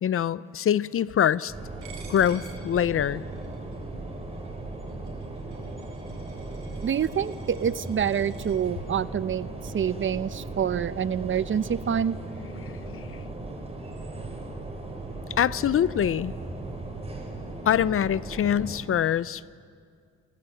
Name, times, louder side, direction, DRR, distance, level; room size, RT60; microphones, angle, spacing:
voice 1, 0.0-1.5 2.1-3.2 12.6-13.3 15.4-16.3 17.6-19.5, left 9 dB, 45° left, 19 dB, 0.6 m, -24 dB
sound 1, 1.5-18.8, right 2 dB, 20° right, 4.8 m, -37 dB
Coin (dropping), 1.8-8.6, right 5 dB, 85° right, 4.2 m, -52 dB
voice 2, 6.8-12.1, right 8 dB, 40° right, 16 dB, 0.7 m, -27 dB
28.0 x 19.0 x 7.9 m, 2.2 s
cardioid pair, 90°, 30 cm